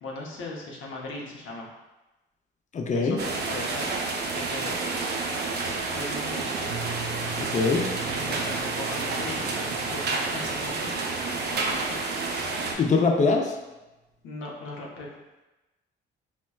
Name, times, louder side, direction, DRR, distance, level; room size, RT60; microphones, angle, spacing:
voice 1, 0.0-1.7 2.9-3.9 4.3-4.9 5.9-6.5 8.1-11.2 11.5-12.1 14.2-15.2, left 2 dB, 80° left, -2 dB, 0.7 m, -38 dB
voice 2, 2.7-3.2 7.4-7.9 12.8-13.6, left 4 dB, 40° left, 2 dB, 0.5 m, -23 dB
sound 1, 3.2-12.7, right 3 dB, 55° right, 0.6 m, -30 dB
Piano, 6.7-12.3, right 4 dB, 10° right, 0.7 m, -42 dB
4.3 x 2.2 x 2.3 m, 1.1 s
cardioid pair, 90°, 20 cm